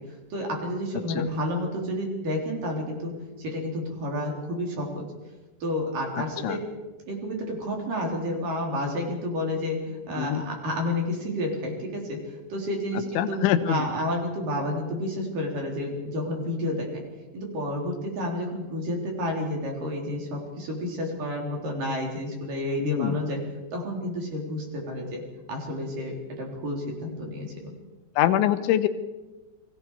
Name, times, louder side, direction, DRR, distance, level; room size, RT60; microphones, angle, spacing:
voice 1, 0.3-3.1 3.4-5.0 5.6-6.6 7.1-12.2 12.5-17.0 17.3-23.4 23.7-25.2 25.5-27.7, left 1 dB, 45° right, 0 dB, 4.8 m, -30 dB
voice 2, 13.2-13.8 22.8-23.2 28.2-28.9, left 11 dB, 75° left, 9 dB, 3.2 m, -24 dB
29.5 x 22.0 x 4.8 m, 1.1 s
omnidirectional pair, 6.0 m